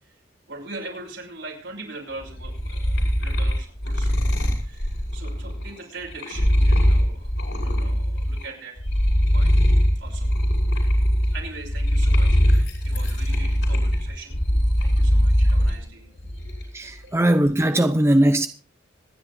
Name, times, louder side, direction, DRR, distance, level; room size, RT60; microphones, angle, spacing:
voice 1, 0.5-8.8 9.2-9.6 10.0-10.3 11.3-14.4 14.8-16.2 17.0-17.2, right 3 dB, 70° right, 5.6 m, -41 dB
sound 1, 2.2-8.4 8.8-15.8 16.2-16.8, equal, 65° left, 6.0 m, -21 dB
voice 2, 16.7-18.5, right 1 dB, 15° right, 0.6 m, -19 dB
26.0 x 10.5 x 2.6 m
head